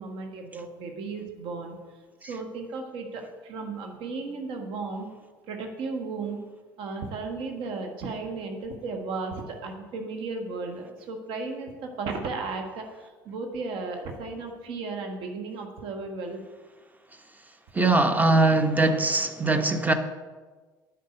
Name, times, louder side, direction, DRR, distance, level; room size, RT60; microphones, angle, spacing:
voice 1, 0.0-1.8 2.2-5.1 5.5-6.4 6.8-16.4, right 3 dB, 50° right, 1.4 m, -35 dB
voice 2, 17.7-19.9, right 2 dB, 15° right, 1.0 m, -21 dB
9.3 x 5.8 x 7.8 m
figure-of-eight pair, 60°, 11 cm